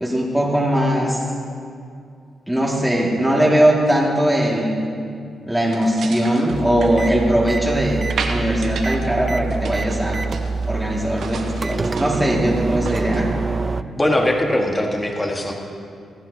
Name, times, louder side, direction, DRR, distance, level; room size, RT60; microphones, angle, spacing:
voice 1, 0.0-1.3 2.5-4.8 5.5-10.2 10.7-13.3, equal, 5° right, -4 dB, 2.0 m, -20 dB
sound 1, 5.7-7.6 8.1-9.1 9.3-10.7 11.0-13.2, right 4 dB, 70° right, 1.1 m, -33 dB
sound 2, 6.5-13.8, right 4 dB, 35° right, 0.4 m, -26 dB
voice 2, 14.0-15.5, left 1 dB, 15° left, 1 dB, 1.4 m, -20 dB
26.0 x 9.1 x 2.7 m, 2.4 s
cardioid pair, 85°, 0 cm